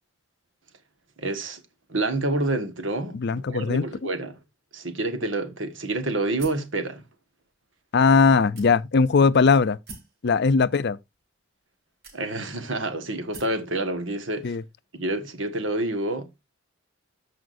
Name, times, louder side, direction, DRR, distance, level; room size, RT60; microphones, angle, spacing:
voice 1, 1.2-1.6 1.9-4.4 4.7-7.0 12.1-14.6 14.9-16.3, right 2 dB, 75° right, 1.5 m, -28 dB
voice 2, 3.1-3.9 7.9-9.8 10.2-11.0 14.4-14.6, left 4 dB, 60° left, 0.5 m, -19 dB
sound 1, 6.4-6.7 7.5-7.6 8.6-9.1 9.9-10.2 11.1-11.2 12.0-12.6 13.3-13.6, right 3 dB, 55° right, 3.4 m, -44 dB
14.0 x 5.0 x 2.6 m
head